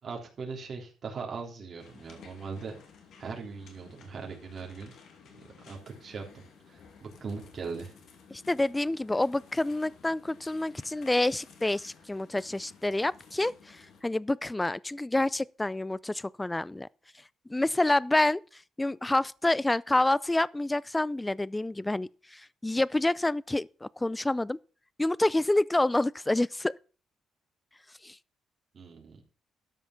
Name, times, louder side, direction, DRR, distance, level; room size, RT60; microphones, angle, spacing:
voice 1, 0.0-2.8 3.2-4.9 5.7-7.9 28.7-29.2, right 5 dB, 50° right, 3.5 m, -40 dB
sound 1, 1.8-14.0, left 6 dB, 70° left, 2.5 m, -54 dB
voice 2, 8.3-16.9 17.5-18.4 18.8-24.6 25.0-26.7 28.0-28.2, left 2 dB, 15° left, 0.4 m, -28 dB
13.0 x 5.6 x 5.9 m
cardioid pair, 90°, 0 cm